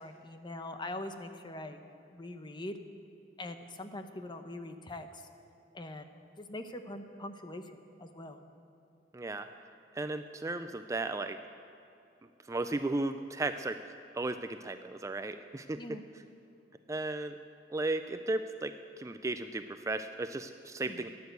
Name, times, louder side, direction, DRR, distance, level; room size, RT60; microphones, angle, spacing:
voice 1, 0.0-1.8 2.1-2.8 3.4-5.2 5.7-6.1 6.4-8.4 15.8-16.0 20.9-21.0, left 1 dB, 25° left, 8 dB, 0.8 m, -42 dB
voice 2, 9.1-9.5 10.0-11.4 12.5-13.8 14.1-16.0 16.9-17.4 17.7-21.1, right 2 dB, 15° right, 9 dB, 0.4 m, -35 dB
14.0 x 10.5 x 8.0 m, 2.7 s
head